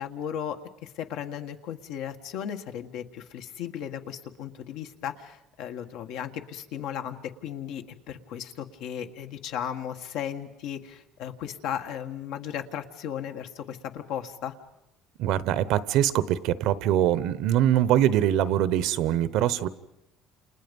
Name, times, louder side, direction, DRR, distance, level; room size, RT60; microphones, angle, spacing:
voice 1, 0.0-14.5, left 9 dB, 75° left, 6 dB, 1.7 m, -36 dB
voice 2, 15.2-19.7, right 11 dB, 70° right, 16 dB, 1.0 m, -23 dB
29.0 x 29.0 x 5.4 m, 0.85 s
cardioid pair, 145°, 0 cm